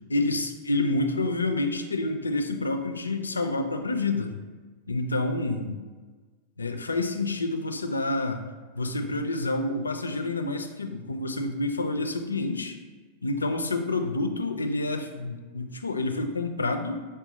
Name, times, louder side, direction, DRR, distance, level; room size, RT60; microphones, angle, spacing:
voice 1, 0.1-4.4 4.9-5.8 6.6-8.4 8.7-12.8 13.2-17.0, left 2 dB, 75° left, 6 dB, 0.4 m, -28 dB
4.8 x 2.3 x 3.9 m, 1.4 s
figure-of-eight pair, 90°, 0 cm